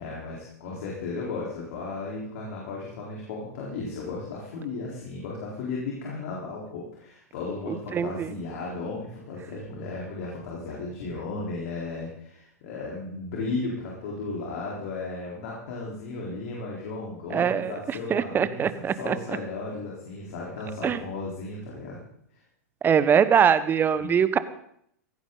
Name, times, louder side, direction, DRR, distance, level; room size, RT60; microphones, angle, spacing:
voice 1, 0.0-22.0 22.3-22.4 24.0-24.2, left 3 dB, 60° left, -4 dB, 4.1 m, -35 dB
voice 2, 7.7-8.3 17.3-19.2 20.8-21.0 22.8-24.4, right 7 dB, 25° right, 14 dB, 1.0 m, -23 dB
16.5 x 15.0 x 4.0 m, 0.69 s
hypercardioid pair, 100°, 9 cm